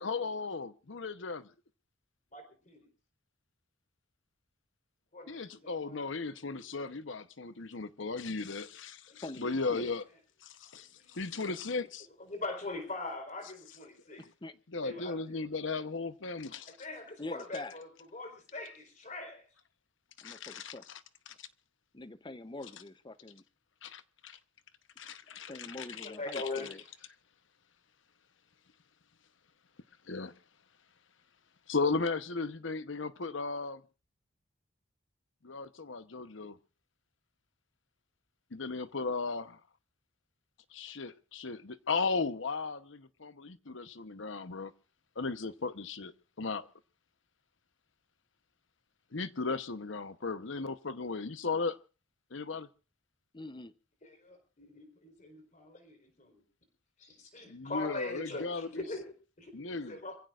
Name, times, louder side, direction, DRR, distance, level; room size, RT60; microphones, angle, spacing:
voice 1, 0.0-1.5 5.3-10.0 10.4-12.1 14.7-16.8 20.2-20.7 23.8-24.4 25.0-26.4 30.1-30.3 31.7-33.8 35.4-36.6 38.5-39.6 40.7-44.7 45.2-46.7 49.1-51.8 52.3-52.7 57.5-58.8 59.5-60.0, left 4 dB, 70° left, 0.9 m, -36 dB
voice 2, 2.3-2.9 5.1-6.0 6.5-6.7 9.1-10.0 10.8-11.9 12.2-14.3 14.8-15.4 16.7-19.5 25.3-26.9 45.4-45.5 54.0-56.4 57.0-60.2, left 2 dB, 40° left, 4.1 m, -43 dB
voice 3, 9.2-9.9 14.2-14.5 17.2-17.8 20.2-20.8 21.9-23.4 25.5-26.8 53.3-53.7, left 2 dB, 25° left, 0.7 m, -44 dB
26.5 x 16.0 x 2.5 m
head